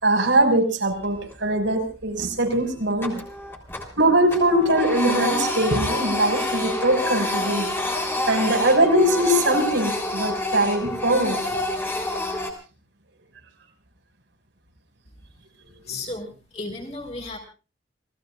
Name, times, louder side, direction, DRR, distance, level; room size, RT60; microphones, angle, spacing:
voice 1, 0.0-3.2 4.0-7.7 8.3-11.4 15.9-16.0, right 1 dB, 80° right, 2 dB, 5.8 m, -21 dB
Printer, 0.9-1.5 1.9-2.0 2.5-4.0 4.3-12.5, left 2 dB, 10° left, 3.6 m, -28 dB
voice 2, 15.8-17.4, left 2 dB, 35° left, 0 dB, 5.6 m, -34 dB
29.5 x 18.5 x 2.5 m, 0.34 s
head